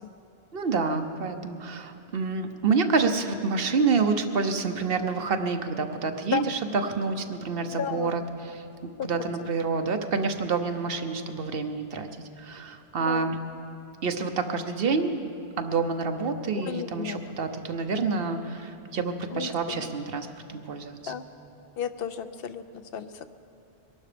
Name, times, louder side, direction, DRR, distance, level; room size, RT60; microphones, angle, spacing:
voice 1, 0.5-8.6 9.0-12.1 12.4-13.4 14.0-15.3 15.6-21.1, right 4 dB, 65° right, 7 dB, 1.0 m, -28 dB
voice 2, 7.8-8.1 9.0-9.2 13.0-13.3 16.5-17.2 19.3-19.9 21.1-21.2 21.8-22.6 22.9-23.3, left 8 dB, 70° left, 11 dB, 0.8 m, -33 dB
22.5 x 11.5 x 5.1 m, 2.7 s
omnidirectional pair, 1.0 m